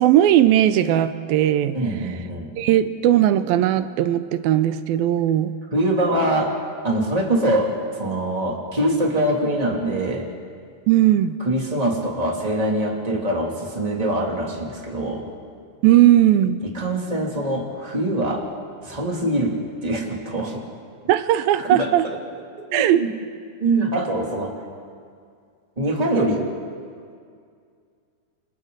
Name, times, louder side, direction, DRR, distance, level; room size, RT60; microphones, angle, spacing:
voice 1, 0.0-1.8 2.6-5.5 10.9-11.4 15.8-16.6 21.1-22.1 22.7-23.0, right 12 dB, 90° right, 11 dB, 2.5 m, -18 dB
voice 2, 1.7-2.5 5.7-6.6 6.8-10.2 11.4-15.3 16.7-18.5 18.8-19.6 19.8-20.7 21.6-21.9 22.6-23.1 23.6-24.5 25.8-26.4, right 1 dB, 10° right, -1 dB, 2.4 m, -23 dB
29.5 x 28.5 x 4.0 m, 2.2 s
omnidirectional pair, 4.2 m